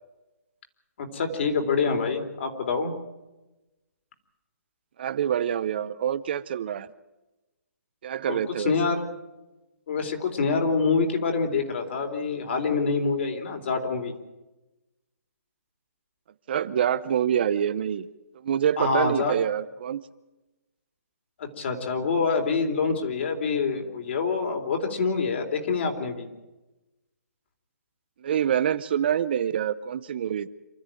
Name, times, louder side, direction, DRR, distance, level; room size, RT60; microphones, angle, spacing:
voice 1, 1.0-2.9 8.3-9.0 9.9-14.1 18.8-19.4 21.4-26.3, left 4 dB, 45° left, 4 dB, 3.8 m, -26 dB
voice 2, 5.0-6.9 8.0-8.7 16.5-18.1 18.3-20.0 28.2-30.5, right 9 dB, 40° right, 13 dB, 0.7 m, -26 dB
27.0 x 14.0 x 9.2 m, 1.0 s
hypercardioid pair, 165°, 9 cm